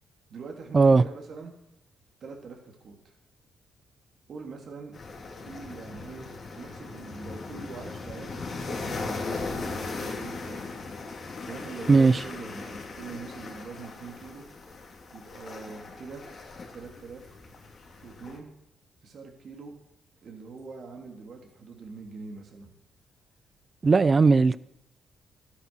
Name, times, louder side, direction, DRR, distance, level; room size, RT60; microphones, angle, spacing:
voice 1, 0.3-1.5 2.2-3.1 4.3-4.9 5.3-10.6 11.4-14.5 15.1-16.3 16.7-17.2 18.0-18.5 19.0-19.7 20.2-22.7, right 4 dB, 60° right, 2 dB, 3.4 m, -43 dB
sound 1, 4.9-18.4, left 3 dB, 50° left, 3.0 m, -38 dB
voice 2, 11.9-12.2 23.8-24.6, right 4 dB, 35° right, 18 dB, 0.7 m, -18 dB
13.5 x 10.0 x 6.3 m, 0.82 s
cardioid pair, 75°, 0 cm